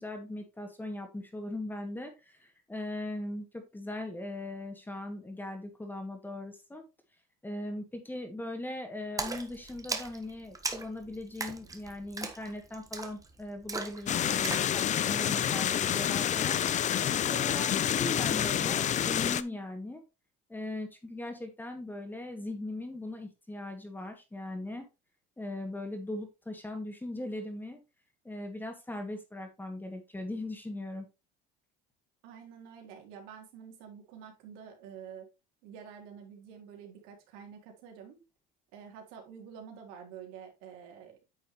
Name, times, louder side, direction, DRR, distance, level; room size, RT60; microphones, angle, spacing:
voice 1, 0.0-6.8 7.4-14.8 15.1-16.6 17.2-20.0 20.5-24.8 25.4-27.8 28.2-31.1, left 1 dB, 10° left, 5 dB, 2.2 m, -39 dB
Splash splatter, 9.2-14.7, right 3 dB, 15° right, 1.3 m, -39 dB
sound 1, 14.1-19.4, left 10 dB, 35° left, 0.6 m, -28 dB
voice 2, 32.2-35.3 35.6-38.2 38.7-41.3, right 7 dB, 80° right, 2 dB, 3.3 m, -48 dB
9.4 x 6.3 x 3.1 m, 0.26 s
cardioid pair, 120°, 21 cm